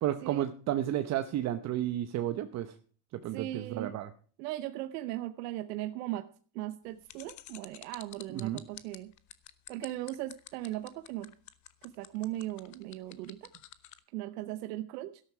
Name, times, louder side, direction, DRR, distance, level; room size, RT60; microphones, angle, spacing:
voice 1, 0.0-2.7 3.1-4.1 8.3-8.6, right 12 dB, 35° right, 10 dB, 0.8 m, -32 dB
voice 2, 3.3-3.9 4.4-6.3 6.5-9.1 9.7-11.3 11.8-13.5 14.1-15.2, right 15 dB, 90° right, 11 dB, 0.9 m, -38 dB
sound 1, 7.1-14.0, left 14 dB, 40° left, 1.1 m, -48 dB
13.0 x 12.5 x 4.7 m, 0.43 s
supercardioid pair, 140°, 46 cm